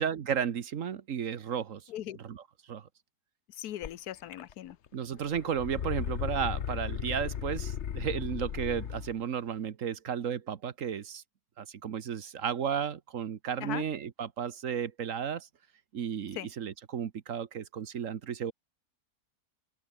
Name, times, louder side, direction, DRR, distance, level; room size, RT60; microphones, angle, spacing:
voice 1, 0.0-1.8 2.2-2.4 2.7-2.9 4.9-11.2 11.6-15.5 15.9-18.5, right 8 dB, 60° right, 1.3 m, -33 dB
voice 2, 3.6-4.8 13.6-13.8 16.4-16.5, left 12 dB, 75° left, 1.3 m, -39 dB
sound 1, 3.8-3.9 4.3-4.9 5.2-9.1, left 8 dB, 50° left, 1.1 m, -36 dB
open air
omnidirectional pair, 1.6 m